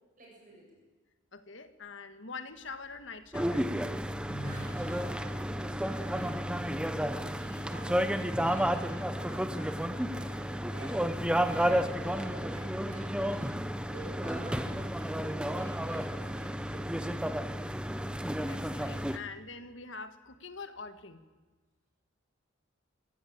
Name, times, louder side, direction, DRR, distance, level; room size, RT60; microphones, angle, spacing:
voice 1, 0.2-0.8 4.4-13.5 13.9-16.9, right 1 dB, 40° right, -2 dB, 7.6 m, -49 dB
voice 2, 1.3-3.7 18.4-21.2, left 4 dB, 65° left, 9 dB, 1.7 m, -44 dB
sound 1, 2.7-3.5 3.9-5.4 5.7-8.7, right 1 dB, 40° left, 5.7 m, -46 dB
sound 2, 3.3-19.2, equal, 5° right, 0.9 m, -32 dB
25.5 x 16.0 x 8.8 m, 1.3 s
head